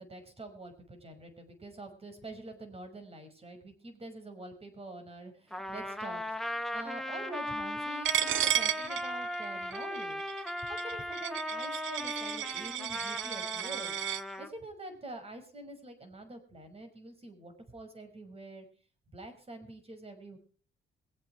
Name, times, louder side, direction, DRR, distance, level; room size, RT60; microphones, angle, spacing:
voice 1, 0.0-14.0 14.4-18.7 19.1-20.4, right 2 dB, 30° right, 6 dB, 5.7 m, -46 dB
Trumpet, 5.5-14.5, left 1 dB, ahead, 1.4 m, -37 dB
Coin (dropping), 8.0-14.2, right 13 dB, 75° right, 0.7 m, -34 dB
22.5 x 8.5 x 4.9 m, 0.42 s
cardioid pair, 90°, 20 cm